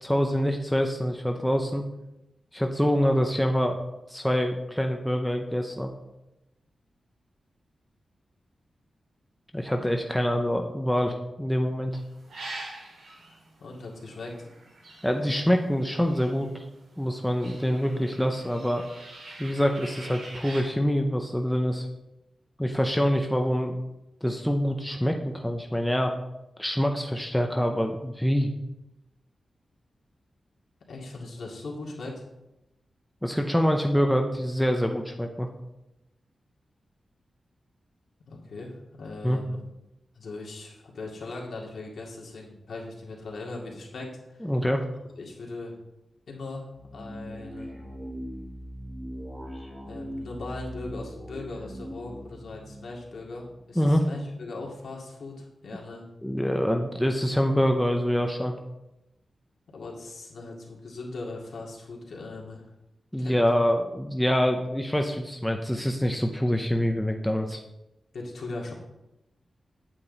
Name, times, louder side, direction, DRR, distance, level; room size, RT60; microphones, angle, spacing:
voice 1, 0.0-1.8 2.5-3.8 4.1-5.9 9.5-12.0 15.0-16.6 17.0-18.8 19.4-21.9 22.6-23.8 24.2-26.1 26.6-28.5 33.2-35.5 39.2-39.4 44.4-44.8 53.8-54.1 56.2-58.5 63.1-67.6, equal, 5° left, 3 dB, 0.6 m, -25 dB
sound 1, 11.9-16.7 17.0-20.6, right 2 dB, 85° right, 4.1 m, -44 dB
voice 2, 13.6-14.4 30.9-32.2 38.3-39.6 40.1-44.5 45.2-45.7 46.3-47.7 49.9-56.0 59.7-62.7 63.2-63.6 68.1-68.7, left 2 dB, 65° left, -2 dB, 2.2 m, -39 dB
sound 2, 46.7-53.9, equal, 15° right, 2.0 m, -40 dB
9.0 x 8.7 x 4.0 m, 0.93 s
wide cardioid pair, 175°, 0 cm